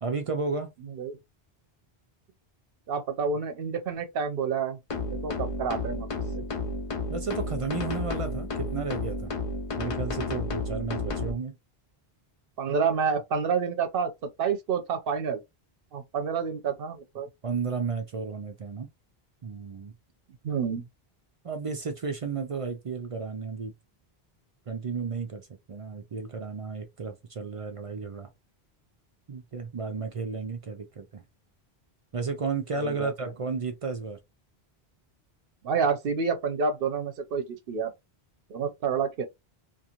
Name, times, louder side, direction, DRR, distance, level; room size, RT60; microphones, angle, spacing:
voice 1, 0.0-0.7 7.1-9.3 9.8-11.6 17.4-18.9 19.4-19.9 21.4-23.7 24.7-28.3 29.3-31.2 32.1-34.2, right 4 dB, 45° right, 0.4 m, -33 dB
voice 2, 0.8-1.2 2.9-4.8 5.2-6.1 6.4-6.5 12.6-15.4 15.9-17.3 20.4-20.9 32.7-33.3 35.6-37.9 38.5-39.2, right 5 dB, 65° right, 0.8 m, -29 dB
sound 1, 4.9-11.3, left 3 dB, 50° left, 0.4 m, -32 dB
2.5 x 2.5 x 2.8 m
omnidirectional pair, 1.0 m